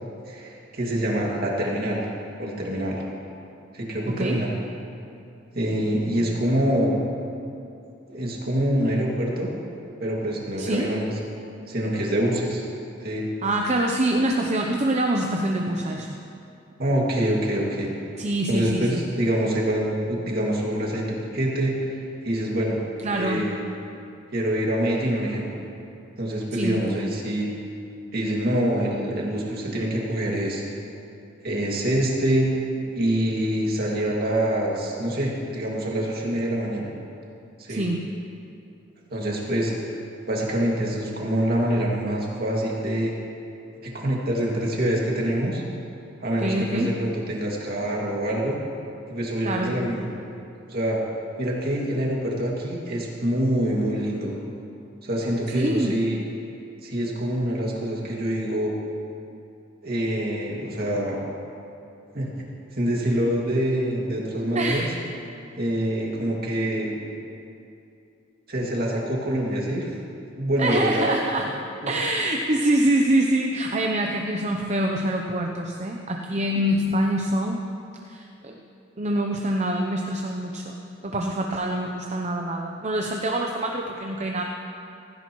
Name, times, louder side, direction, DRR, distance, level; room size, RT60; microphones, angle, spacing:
voice 1, 0.3-2.1 2.4-3.0 3.7-4.5 5.5-7.0 8.1-9.5 10.0-11.1 11.7-12.6 13.0-13.2 16.8-17.9 18.5-22.8 23.1-23.6 24.3-25.6 26.2-27.5 28.1-30.6 31.4-32.5 32.9-36.9 37.6-37.8 39.1-39.9 40.3-43.1 43.8-45.6 46.2-48.6 49.1-50.1 50.7-51.0 51.4-54.3 55.0-56.2 56.8-58.7 59.8-61.2 62.1-62.3 62.7-64.9 65.6-67.0 68.5-69.9 70.4-71.1, right 1 dB, 50° right, -3 dB, 2.2 m, -25 dB
voice 2, 4.1-4.4 10.6-10.9 13.4-16.2 18.2-19.0 23.0-23.4 26.5-26.8 37.7-38.1 46.4-46.9 49.4-49.8 55.5-56.0 64.5-64.9 70.6-77.6 78.0-78.6 79.0-80.8 81.0-84.4, right 1 dB, 35° right, 2 dB, 0.7 m, -25 dB
16.0 x 15.5 x 3.1 m, 2.6 s
head